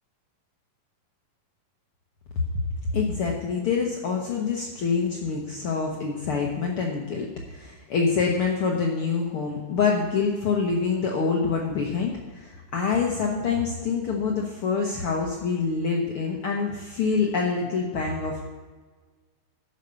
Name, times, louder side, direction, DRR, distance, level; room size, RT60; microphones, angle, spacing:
voice 1, 2.9-18.4, left 5 dB, 90° left, -1 dB, 1.2 m, -26 dB
12.5 x 5.2 x 6.7 m, 1.4 s
omnidirectional pair, 3.9 m